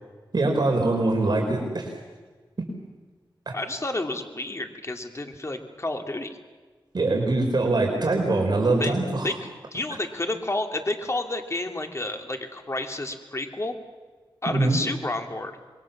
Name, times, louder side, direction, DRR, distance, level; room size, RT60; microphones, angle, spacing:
voice 1, 0.3-1.9 3.5-3.6 6.9-9.3 14.5-14.8, right 2 dB, 55° right, 0 dB, 4.8 m, -23 dB
voice 2, 3.5-6.4 8.8-8.9 9.2-13.8 14.4-15.5, left 2 dB, 35° left, 4 dB, 2.7 m, -30 dB
27.0 x 22.0 x 7.3 m, 1.4 s
wide cardioid pair, 75°, 9 cm